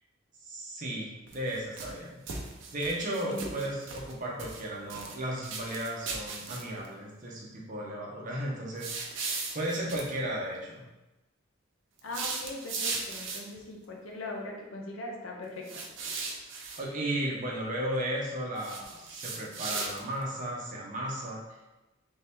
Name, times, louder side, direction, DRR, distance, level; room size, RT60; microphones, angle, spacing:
voice 1, 0.4-2.2 2.7-9.2 9.5-10.8 16.5-21.4, right 1 dB, 40° right, -3 dB, 0.8 m, -35 dB
sound 1, 1.3-2.0 2.3-4.1 4.4-5.2 5.4-6.9 8.8-10.1 12.0-13.6 15.6-16.8 18.6-20.2, right 4 dB, 65° right, 0.6 m, -37 dB
voice 2, 12.0-15.8, left 2 dB, 80° left, -1 dB, 0.8 m, -40 dB
3.5 x 2.8 x 3.5 m, 1.0 s
head